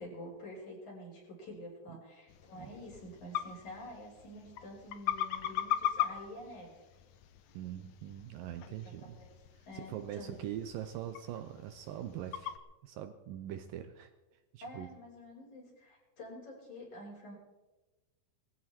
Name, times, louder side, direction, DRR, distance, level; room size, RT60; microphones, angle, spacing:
voice 1, 0.0-6.7 8.8-9.3 9.7-10.3 14.6-17.4, left 1 dB, 50° left, -3 dB, 6.7 m, -48 dB
sound 1, 2.3-12.6, left 11 dB, 80° left, 1.6 m, -40 dB
voice 2, 7.5-9.2 9.6-12.5 12.8-14.1 14.5-14.9, right 11 dB, 75° right, 9 dB, 2.2 m, -42 dB
19.5 x 15.5 x 4.4 m, 1.1 s
omnidirectional pair, 4.4 m